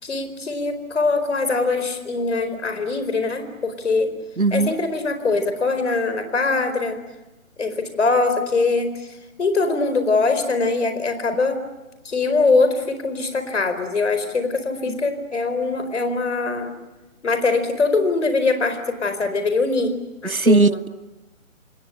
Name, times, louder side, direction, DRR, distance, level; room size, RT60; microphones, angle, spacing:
voice 1, 0.0-4.1 4.5-7.0 7.6-9.1 9.4-11.6 12.0-16.7 17.2-19.9 20.2-20.8, left 3 dB, 60° left, 9 dB, 4.7 m, -22 dB
voice 2, 4.4-4.7 14.9-15.0 20.3-20.9, right 3 dB, 90° right, 20 dB, 1.0 m, -18 dB
28.0 x 21.0 x 9.9 m, 1.0 s
figure-of-eight pair, 140°, 41 cm